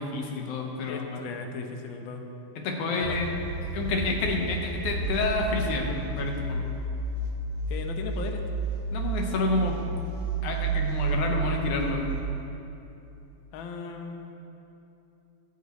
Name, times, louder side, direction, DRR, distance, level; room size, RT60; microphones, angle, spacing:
voice 1, 0.0-1.3 2.6-3.3 3.7-6.6 8.9-10.0 10.4-12.1, left 3 dB, 85° left, 1 dB, 2.7 m, -29 dB
voice 2, 0.9-2.2 3.0-3.2 3.8-4.0 7.7-8.4 13.5-14.3, left 5 dB, 65° left, 3 dB, 1.3 m, -37 dB
sound 1, 3.0-12.2, right 3 dB, 85° right, 2.7 m, -31 dB
23.5 x 8.5 x 3.2 m, 2.8 s
omnidirectional pair, 3.4 m